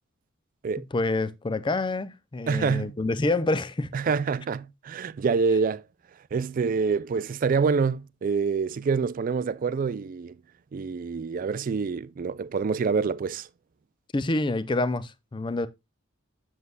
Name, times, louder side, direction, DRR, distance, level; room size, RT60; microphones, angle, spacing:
voice 1, 0.9-3.9 14.1-15.7, left 2 dB, 25° left, 0.5 m, -27 dB
voice 2, 2.5-2.9 3.9-5.8 6.3-10.4 10.7-13.5, right 5 dB, 40° right, 0.3 m, -26 dB
7.9 x 7.3 x 2.2 m
head